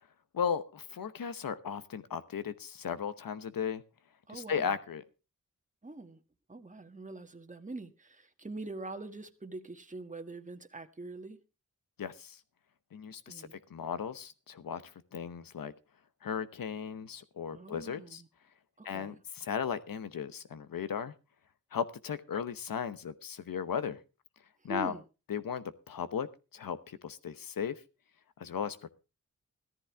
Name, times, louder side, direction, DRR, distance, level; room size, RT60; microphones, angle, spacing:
voice 1, 0.3-3.8 4.3-5.0 12.0-12.4 12.9-14.8 15.1-15.7 16.2-18.2 18.8-21.1 21.7-24.0 24.6-24.9 25.3-26.3 26.5-27.7 28.4-28.9, left 7 dB, 85° left, 1.0 m, -36 dB
voice 2, 4.3-4.8 5.8-6.2 6.5-11.4 13.3-13.6 17.5-18.3 18.8-19.2 24.6-25.0, right 2 dB, 20° right, 1.4 m, -44 dB
15.0 x 14.0 x 3.5 m
cardioid pair, 45°, 33 cm